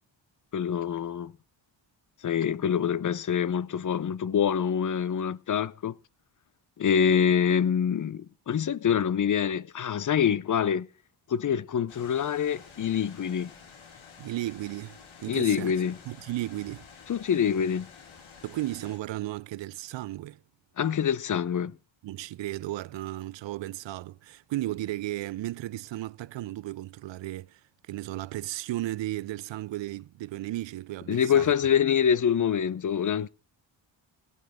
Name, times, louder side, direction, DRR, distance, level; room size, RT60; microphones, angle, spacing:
voice 1, 0.5-1.3 2.2-5.9 6.8-10.9 11.3-13.5 15.3-16.0 17.1-17.9 20.8-21.7 31.1-33.3, left 8 dB, 40° left, 0.7 m, -25 dB
sound 1, 11.9-19.0, left 6 dB, 85° left, 3.1 m, -50 dB
voice 2, 14.2-15.7 16.0-16.9 18.4-20.4 22.0-27.6 27.9-31.5, right 15 dB, 70° right, 0.6 m, -35 dB
17.5 x 11.0 x 3.7 m
cardioid pair, 80°, 46 cm